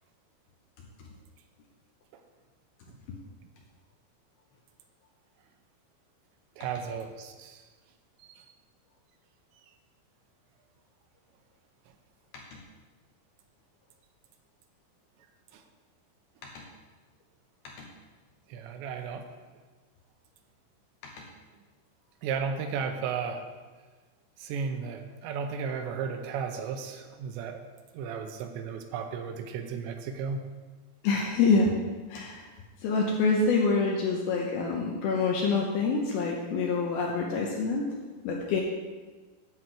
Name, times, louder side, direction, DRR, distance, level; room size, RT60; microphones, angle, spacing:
voice 1, 6.6-7.6 8.3-8.4 15.5-15.6 18.5-19.3 22.2-23.4 24.4-27.6 27.9-30.5, right 6 dB, 80° right, 5 dB, 2.9 m, -34 dB
voice 2, 31.0-31.8 32.1-32.4 32.8-37.9 38.2-38.6, left 4 dB, 75° left, -1 dB, 2.3 m, -26 dB
9.8 x 4.5 x 7.6 m, 1.3 s
omnidirectional pair, 5.2 m